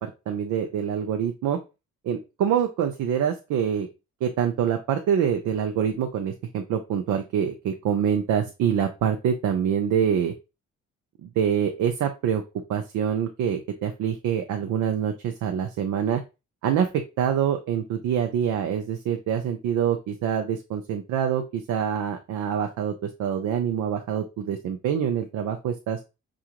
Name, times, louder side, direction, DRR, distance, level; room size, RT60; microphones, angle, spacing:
voice 1, 0.0-1.6 2.0-3.9 4.2-10.3 11.2-12.4 12.7-16.2 16.6-26.0, right 8 dB, 80° right, 5 dB, 0.7 m, -25 dB
5.8 x 2.5 x 2.9 m, 0.27 s
cardioid pair, 90°, 30 cm